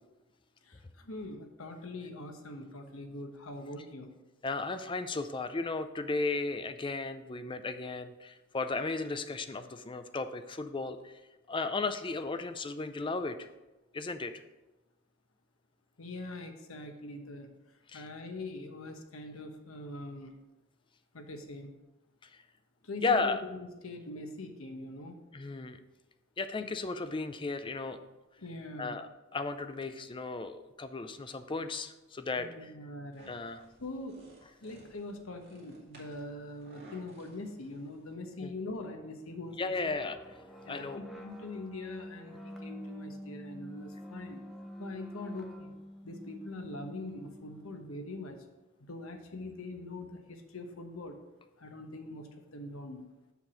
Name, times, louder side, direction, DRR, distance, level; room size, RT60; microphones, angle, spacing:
voice 1, 0.6-4.1 16.0-17.5 17.9-20.3 21.1-21.7 22.8-25.2 28.4-29.0 32.4-33.3 33.8-34.2 34.6-39.9 40.6-44.4 44.8-45.7 46.0-48.4 48.8-51.2 51.6-53.1, left 2 dB, 85° left, 5 dB, 1.1 m, -43 dB
voice 2, 4.4-11.1 11.5-13.5 13.9-14.3 17.9-18.1 23.0-23.4 25.3-25.8 26.4-28.0 28.8-32.7 33.3-33.6 38.4-38.5 39.6-40.2 40.7-41.0, left 3 dB, 25° left, 10 dB, 0.5 m, -35 dB
sound 1, 33.1-38.1, right 1 dB, 50° right, 2.2 m, -58 dB
sound 2, 39.0-47.8, equal, ahead, 0.8 m, -47 dB
7.1 x 6.0 x 4.9 m, 1.0 s
head